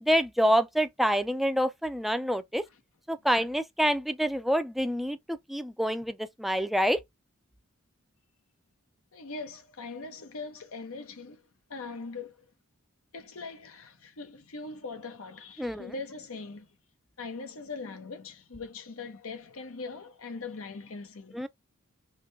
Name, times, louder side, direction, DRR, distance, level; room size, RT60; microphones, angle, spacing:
voice 1, 0.0-2.6 3.1-7.0 15.6-15.9 21.3-21.5, equal, ahead, 0.4 m, -27 dB
voice 2, 9.1-11.4 11.7-12.4 13.1-16.7 17.2-21.4, left 4 dB, 85° left, 0.9 m, -41 dB
3.7 x 3.1 x 3.3 m
head